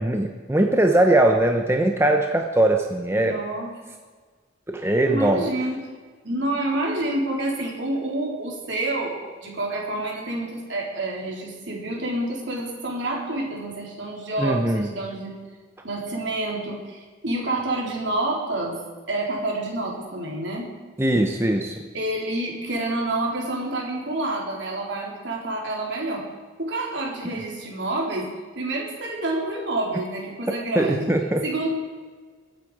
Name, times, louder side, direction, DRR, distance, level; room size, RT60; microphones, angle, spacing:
voice 1, 0.0-3.4 4.7-5.4 14.4-14.9 21.0-21.8 30.5-31.4, right 1 dB, 10° right, 3 dB, 0.8 m, -21 dB
voice 2, 3.1-3.7 5.1-5.8 6.2-15.3 15.8-18.8 19.1-20.7 21.9-26.2 26.6-28.3 28.6-31.1 31.4-31.7, right 2 dB, 65° right, -2 dB, 3.7 m, -28 dB
23.0 x 9.1 x 4.9 m, 1.5 s
head